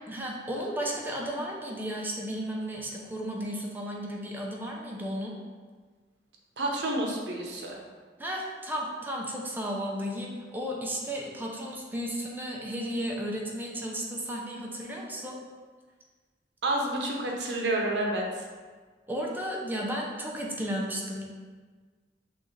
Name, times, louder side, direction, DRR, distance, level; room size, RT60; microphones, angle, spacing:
voice 1, 0.1-5.4 8.2-15.4 19.1-21.3, equal, 10° right, -2 dB, 0.6 m, -34 dB
voice 2, 6.6-7.8 16.6-18.4, right 1 dB, 80° right, -1 dB, 0.8 m, -29 dB
6.1 x 2.5 x 3.2 m, 1.5 s
head